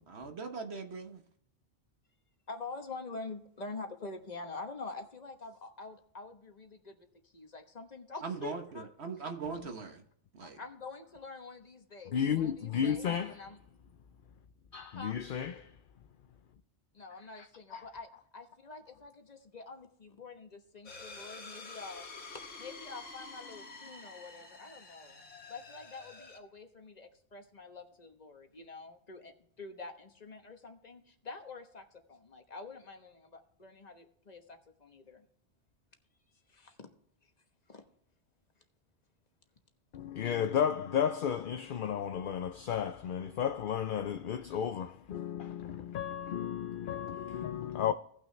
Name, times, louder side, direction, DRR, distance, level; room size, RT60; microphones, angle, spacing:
voice 1, 0.1-1.2 8.2-10.0 10.3-10.6, right 5 dB, 60° right, 1.3 m, -40 dB
voice 2, 2.5-8.9 9.2-9.3 10.6-13.6 14.9-15.2 16.9-22.1 22.3-25.2 25.5-35.3 36.5-36.9 37.7-37.8, left 3 dB, 35° left, 1.2 m, -46 dB
voice 3, 12.1-13.4 14.7-15.7 17.4-17.9 39.9-47.9, left 8 dB, 55° left, 0.6 m, -33 dB
sound 1, 20.8-26.4, left 3 dB, 85° left, 2.0 m, -48 dB
17.5 x 6.1 x 3.3 m
omnidirectional pair, 1.2 m